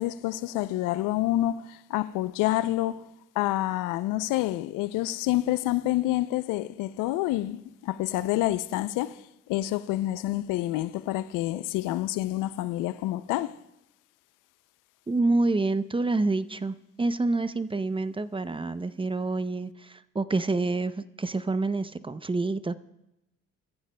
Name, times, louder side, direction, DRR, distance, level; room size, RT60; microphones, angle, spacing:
voice 1, 0.0-3.0 3.4-9.2 9.5-13.6, left 15 dB, 85° left, 0.5 m, -28 dB
voice 2, 15.1-22.7, right 3 dB, 15° right, 0.6 m, -27 dB
23.0 x 14.5 x 2.2 m
supercardioid pair, 60°, 31 cm